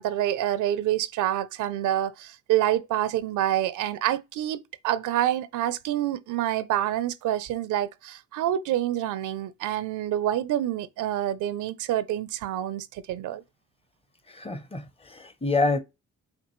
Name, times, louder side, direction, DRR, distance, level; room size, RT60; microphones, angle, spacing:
voice 1, 0.0-13.4, right 12 dB, 80° right, 0.5 m, -27 dB
voice 2, 14.3-15.8, left 3 dB, 20° left, 0.7 m, -27 dB
5.9 x 2.4 x 3.0 m
cardioid pair, 90°, 30 cm